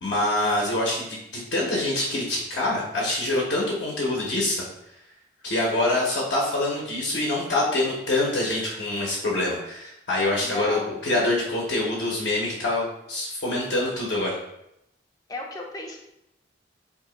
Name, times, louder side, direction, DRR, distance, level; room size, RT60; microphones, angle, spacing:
voice 1, 0.0-4.7 5.4-14.4, left 2 dB, 65° left, -4 dB, 0.7 m, -25 dB
voice 2, 10.4-11.0 15.3-16.0, left 1 dB, 20° left, 1 dB, 0.4 m, -34 dB
2.8 x 2.6 x 3.8 m, 0.81 s
head